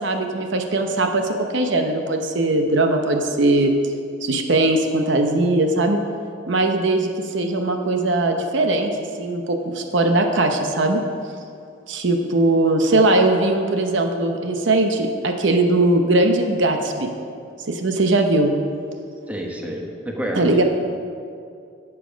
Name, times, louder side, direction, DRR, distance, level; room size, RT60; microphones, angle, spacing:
voice 1, 0.0-3.7 4.2-6.0 6.5-8.9 9.2-11.0 11.9-17.1 17.6-18.5 20.3-20.6, right 2 dB, 65° right, 4 dB, 0.8 m, -20 dB
voice 2, 19.3-20.6, equal, 10° right, 0 dB, 1.1 m, -28 dB
11.5 x 7.2 x 5.1 m, 2.4 s
head